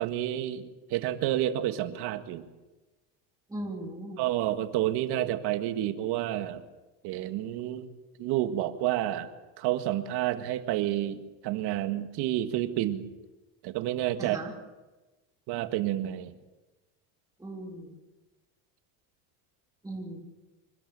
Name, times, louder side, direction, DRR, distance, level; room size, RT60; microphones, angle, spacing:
voice 1, 0.0-2.5 4.2-6.6 7.0-7.9 8.2-9.3 9.6-13.0 13.6-14.4 15.5-16.3, right 13 dB, 65° right, 8 dB, 1.9 m, -29 dB
voice 2, 3.5-4.2 14.2-14.5 17.4-17.9 19.8-20.2, right 1 dB, 10° right, -2 dB, 3.5 m, -38 dB
26.0 x 13.0 x 8.8 m, 1.1 s
cardioid pair, 135°, 42 cm